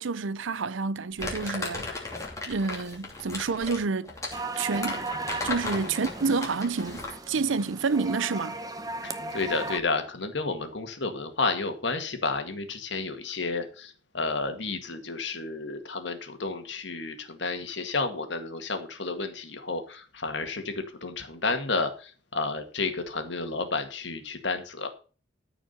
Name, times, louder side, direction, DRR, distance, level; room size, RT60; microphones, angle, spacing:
voice 1, 0.0-2.0 2.5-4.1 4.6-5.1 5.4-8.6, right 4 dB, 85° right, 0.6 m, -29 dB
Crumpling crinkling, 1.2-7.3, left 3 dB, 15° left, 2.7 m, -36 dB
sound 1, 4.3-9.8, right 3 dB, 20° right, 0.8 m, -36 dB
voice 2, 9.0-24.9, left 3 dB, 70° left, 2.0 m, -31 dB
14.0 x 5.0 x 6.7 m
head